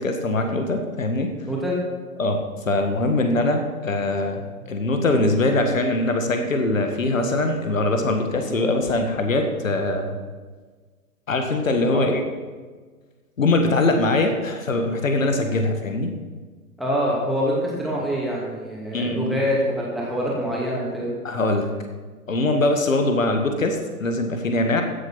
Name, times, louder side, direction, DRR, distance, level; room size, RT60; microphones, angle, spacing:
voice 1, 0.0-1.3 2.2-2.4 2.7-10.2 11.3-12.2 13.4-16.1 18.9-19.5 21.2-21.7 22.3-24.8, left 2 dB, 60° left, 5 dB, 1.9 m, -22 dB
voice 2, 1.5-1.8 8.4-8.5 11.9-12.1 16.8-21.1, equal, ahead, -5 dB, 2.4 m, -25 dB
15.5 x 7.8 x 5.7 m, 1.4 s
figure-of-eight pair, 130°, 45 cm